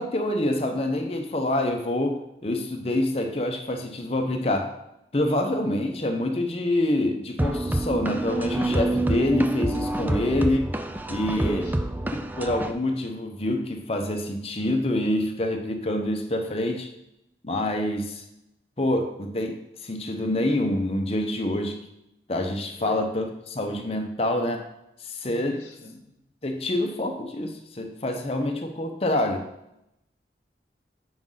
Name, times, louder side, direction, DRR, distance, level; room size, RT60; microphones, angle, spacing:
voice 1, 0.0-4.7 5.1-10.7 11.1-11.7 12.1-16.9 17.4-18.2 18.8-21.8 22.3-24.6 25.0-25.6 26.4-29.4, left 1 dB, 35° left, 3 dB, 0.8 m, -26 dB
sound 1, 7.4-12.7, right 1 dB, 10° right, 0.3 m, -27 dB
voice 2, 11.3-12.1 22.8-23.0 25.2-26.2, left 2 dB, 90° left, 1 dB, 1.0 m, -40 dB
7.8 x 5.2 x 3.9 m, 0.84 s
head